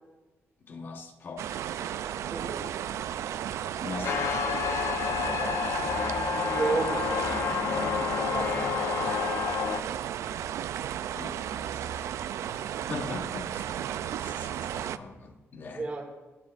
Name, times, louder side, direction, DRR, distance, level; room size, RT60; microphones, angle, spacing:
voice 1, 0.6-1.6 3.8-4.5 7.6-8.5 11.1-12.2 12.5-12.6 12.9-13.7 14.2-15.9, left 3 dB, 45° left, 1.2 m, -41 dB
sound 1, 1.4-15.0, right 10 dB, 85° right, 0.4 m, -34 dB
voice 2, 2.3-2.7 5.3-5.9 6.4-7.6 8.3-8.6 15.7-16.0, right 3 dB, 30° right, 1.6 m, -33 dB
sound 2, 4.0-9.8, left 7 dB, 75° left, 0.7 m, -29 dB
20.0 x 12.0 x 2.5 m
wide cardioid pair, 150°, 5 cm